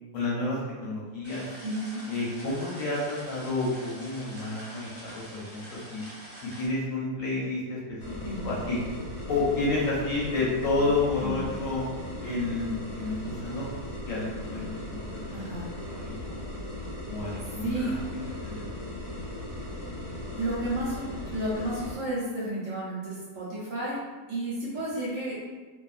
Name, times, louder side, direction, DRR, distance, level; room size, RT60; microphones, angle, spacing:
voice 1, 0.1-1.4 2.1-6.0 6.6-8.8 9.3-11.8 12.2-13.6 14.0-15.4 15.9-16.4 17.1-18.0 18.4-18.7 19.0-19.1, left 3 dB, 65° left, -6 dB, 0.9 m, -30 dB
sound 1, 1.2-6.7, equal, 10° right, 0.9 m, -45 dB
voice 2, 1.6-2.0 8.2-8.6 11.2-11.4 15.3-15.7 17.2-17.3 17.6-18.0 20.4-24.0 24.3-25.4, right 1 dB, 60° right, -7 dB, 0.9 m, -32 dB
sound 2, 8.0-22.0, left 1 dB, 40° left, 0.7 m, -38 dB
2.5 x 2.3 x 2.4 m, 1.3 s
omnidirectional pair, 1.7 m